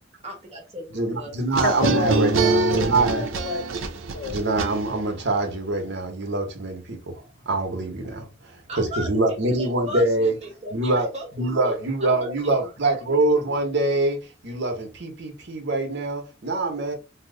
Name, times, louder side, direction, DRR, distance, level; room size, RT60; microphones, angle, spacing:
voice 1, 0.2-1.4 8.7-12.7, equal, 35° right, 1.0 m, -37 dB
voice 2, 0.9-3.2 4.3-10.3 10.7-11.1 11.4-16.9, right 2 dB, 60° right, 0.9 m, -24 dB
sound 1, 1.5-5.2, right 3 dB, 85° right, 0.5 m, -24 dB
voice 3, 1.6-4.4, left 5 dB, 55° left, 0.4 m, -31 dB
2.9 x 2.0 x 3.7 m
head